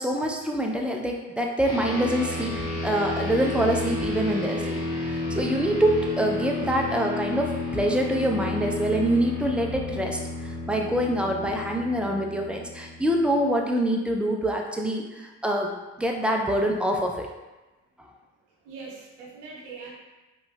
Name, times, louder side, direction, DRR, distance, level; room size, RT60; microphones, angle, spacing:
voice 1, 0.0-2.6 2.8-15.7 16.0-17.3, right 1 dB, 5° right, 1 dB, 0.3 m, -25 dB
sound 1, 1.7-13.3, left 2 dB, 85° left, 0.8 m, -31 dB
voice 2, 6.4-6.8 18.6-19.9, right 4 dB, 80° right, -3 dB, 0.7 m, -42 dB
3.6 x 2.2 x 2.2 m, 1.1 s
hypercardioid pair, 45°, 39 cm